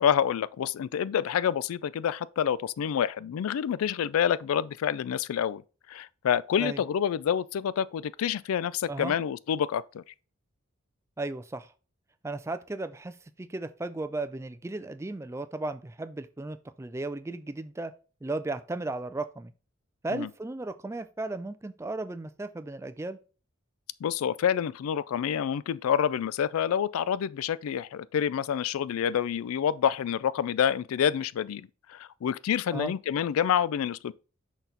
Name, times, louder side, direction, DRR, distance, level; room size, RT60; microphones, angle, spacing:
voice 1, 0.0-5.6 5.9-10.0 20.1-20.3 24.0-34.1, left 8 dB, 90° left, 0.3 m, -28 dB
voice 2, 11.2-11.7 12.2-17.9 18.2-19.5 20.0-23.2 32.7-32.9, right 2 dB, 15° right, 0.3 m, -35 dB
6.2 x 4.1 x 3.8 m
head